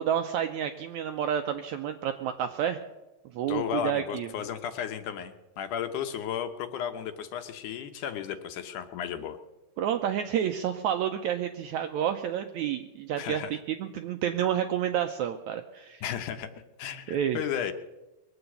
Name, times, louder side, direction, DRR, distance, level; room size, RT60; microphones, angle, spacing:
voice 1, 0.0-2.8 3.3-4.3 9.8-16.0 17.1-17.4, right 9 dB, 80° right, 7 dB, 1.7 m, -29 dB
voice 2, 3.5-9.4 13.2-13.5 16.0-16.5 16.8-17.7, left 9 dB, 70° left, 8 dB, 2.1 m, -34 dB
21.5 x 8.0 x 8.3 m, 1.0 s
omnidirectional pair, 4.1 m